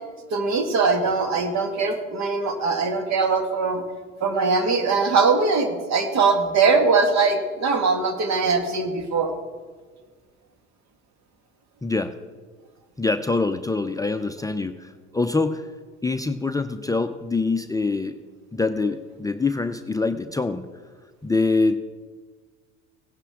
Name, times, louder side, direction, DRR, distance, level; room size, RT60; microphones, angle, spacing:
voice 1, 0.3-3.8 4.2-9.3, right 4 dB, 55° right, 6 dB, 1.9 m, -21 dB
voice 2, 11.8-12.1 13.0-15.7 16.0-18.2 18.5-20.7 21.2-21.8, left 3 dB, 10° left, 7 dB, 0.5 m, -24 dB
17.0 x 9.8 x 3.7 m, 1.5 s
hypercardioid pair, 65°, 34 cm